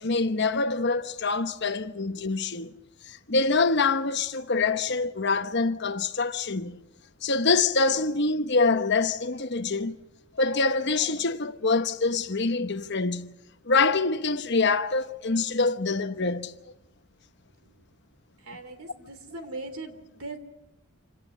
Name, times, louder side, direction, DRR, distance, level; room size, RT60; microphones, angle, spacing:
voice 1, 0.0-2.7 3.1-6.8 7.2-10.0 10.3-13.3 13.6-16.6, left 4 dB, 50° left, 1.1 m, -25 dB
voice 2, 18.4-20.4, right 2 dB, 85° right, 3.1 m, -39 dB
27.5 x 18.0 x 8.3 m
head